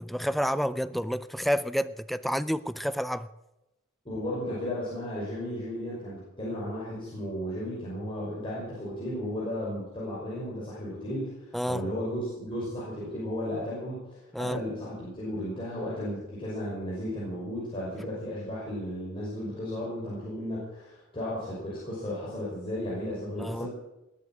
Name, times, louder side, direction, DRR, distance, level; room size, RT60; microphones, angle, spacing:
voice 1, 0.0-3.3 11.5-11.9 14.3-14.6 23.4-23.7, equal, ahead, 0.4 m, -29 dB
voice 2, 4.0-14.0 14.4-23.7, left 1 dB, 25° left, 5.8 m, -34 dB
20.5 x 8.7 x 7.5 m
head